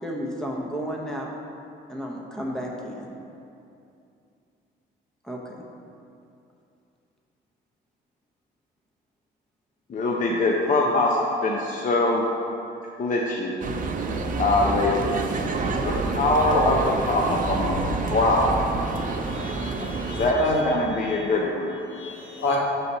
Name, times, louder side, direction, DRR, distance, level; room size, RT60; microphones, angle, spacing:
voice 1, 0.0-1.3 1.9-3.1 5.3-5.4, equal, 5° left, -1 dB, 0.8 m, -32 dB
voice 2, 9.9-12.2 13.0-13.6 14.4-15.2 15.8-16.8 17.1-18.5 20.2-21.8, left 2 dB, 40° left, -2 dB, 0.6 m, -23 dB
sound 1, 13.6-20.3, right 3 dB, 45° right, 0.6 m, -28 dB
voice 3, 19.3-20.6 21.9-22.6, left 2 dB, 80° left, -4 dB, 1.4 m, -30 dB
5.7 x 4.0 x 5.4 m, 2.6 s
cardioid pair, 90°, 20 cm